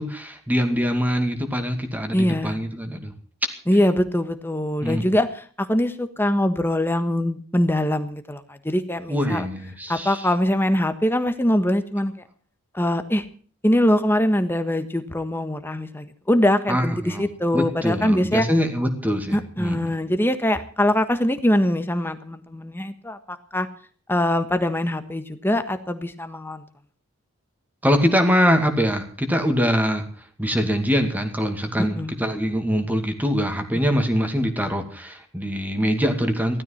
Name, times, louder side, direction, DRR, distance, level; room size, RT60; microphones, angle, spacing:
voice 1, 0.0-3.1 4.8-5.0 9.1-10.3 16.7-17.3 17.5-19.9 27.8-30.0 30.4-36.6, equal, 10° right, 6 dB, 2.3 m, -23 dB
voice 2, 2.1-2.6 3.7-9.5 9.9-12.1 12.7-13.2 13.6-18.5 19.3-23.2 23.5-23.7 24.1-26.6 31.8-32.1 33.9-34.0, left 1 dB, 10° left, 9 dB, 1.3 m, -23 dB
16.0 x 13.0 x 5.8 m, 0.44 s
head